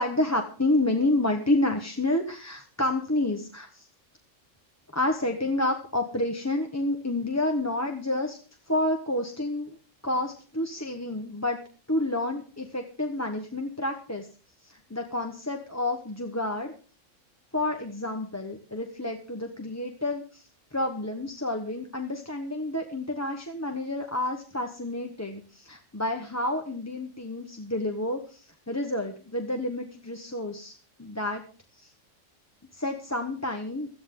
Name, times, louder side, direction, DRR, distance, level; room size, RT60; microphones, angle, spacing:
voice 1, 0.0-3.9 4.9-8.4 8.7-9.8 10.0-11.6 11.9-14.3 14.6-16.7 17.5-30.7 31.0-31.4 31.7-31.9 32.7-33.9, left 1 dB, 15° left, 3 dB, 1.1 m, -29 dB
17.0 x 13.5 x 3.8 m, 0.39 s
omnidirectional pair, 1.3 m